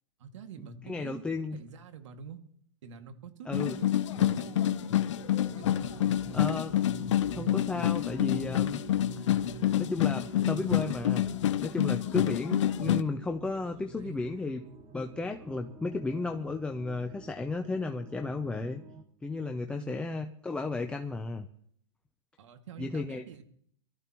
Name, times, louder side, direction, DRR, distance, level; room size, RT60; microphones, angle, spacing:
voice 1, 0.2-1.2 1.5-2.4 2.8-3.9 4.2-4.8 5.6-6.3 13.7-14.3 19.7-20.0 22.4-23.4, right 7 dB, 70° right, 6 dB, 2.2 m, -46 dB
voice 2, 0.8-1.6 3.5-3.8 6.3-6.8 7.4-8.8 9.7-11.3 11.6-14.6 14.9-18.8 19.2-21.5 22.8-23.2, left 3 dB, 5° left, 4 dB, 0.6 m, -34 dB
sound 1, 3.5-13.0, left 12 dB, 70° left, 0.8 m, -28 dB
sound 2, 4.1-19.0, right 6 dB, 25° right, 1.8 m, -48 dB
24.0 x 13.5 x 3.1 m, 0.63 s
hypercardioid pair, 150°, 16 cm